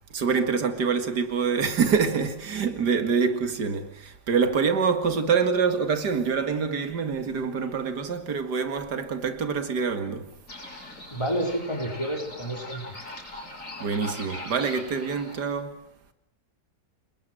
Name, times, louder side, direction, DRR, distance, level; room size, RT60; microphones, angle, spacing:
voice 1, 0.1-10.3 13.8-15.8, right 5 dB, 90° right, 2.5 m, -26 dB
sound 1, 10.5-15.5, left 1 dB, 50° left, 5.4 m, -41 dB
voice 2, 11.1-12.8, right 1 dB, 15° left, 5.0 m, -29 dB
29.0 x 20.0 x 7.8 m
omnidirectional pair, 1.7 m